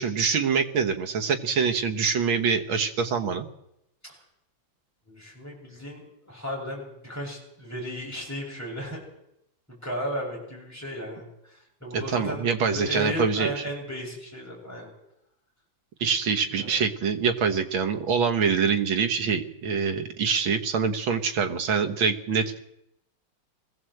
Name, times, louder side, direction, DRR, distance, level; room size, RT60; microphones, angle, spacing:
voice 1, 0.0-3.5 11.9-13.6 16.0-22.6, right 6 dB, 90° right, 6 dB, 2.1 m, -25 dB
voice 2, 5.1-9.0 9.7-14.9 16.5-16.8, equal, 10° left, -4 dB, 7.5 m, -35 dB
21.0 x 16.0 x 7.8 m, 0.82 s
omnidirectional pair, 2.1 m